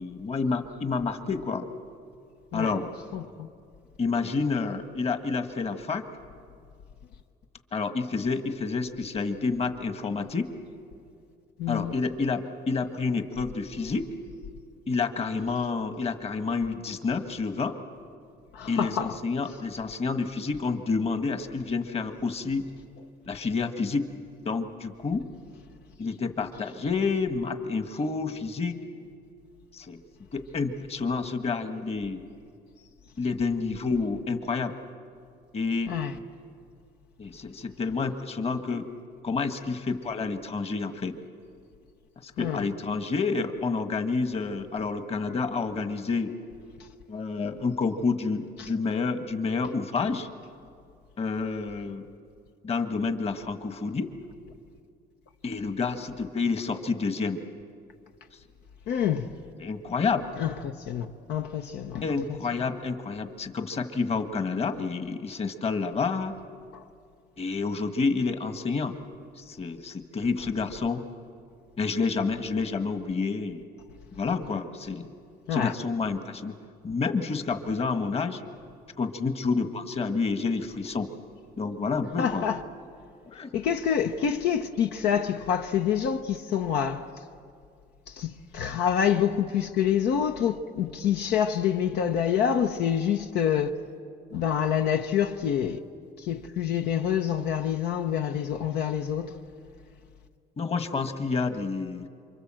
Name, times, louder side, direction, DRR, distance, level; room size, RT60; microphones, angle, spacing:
voice 1, 0.0-1.7 2.5-2.9 4.0-6.0 7.7-10.5 11.7-14.1 14.9-17.8 18.7-22.7 23.3-24.1 24.4-25.2 26.0-28.8 29.7-30.0 30.3-32.2 33.2-34.7 35.5-35.9 37.2-38.9 39.2-41.2 42.2-46.3 47.1-50.3 51.2-52.1 52.6-54.1 55.4-57.4 59.6-60.2 62.0-66.3 67.4-68.9 69.4-71.0 71.8-73.7 74.1-75.1 75.5-76.5 76.8-78.4 79.0-81.1 81.6-82.5 83.3-83.5 100.6-102.1, left 4 dB, 35° left, 1.6 m, -29 dB
voice 2, 11.6-12.0 18.5-19.2 35.9-36.1 42.4-42.7 48.6-48.7 58.9-59.3 60.4-62.2 66.7-66.8 75.5-75.7 82.2-82.6 83.5-87.1 88.1-93.7 94.3-95.8 96.2-99.4, left 8 dB, 80° left, 1.0 m, -27 dB
28.0 x 24.5 x 7.6 m
cardioid pair, 110°, 17 cm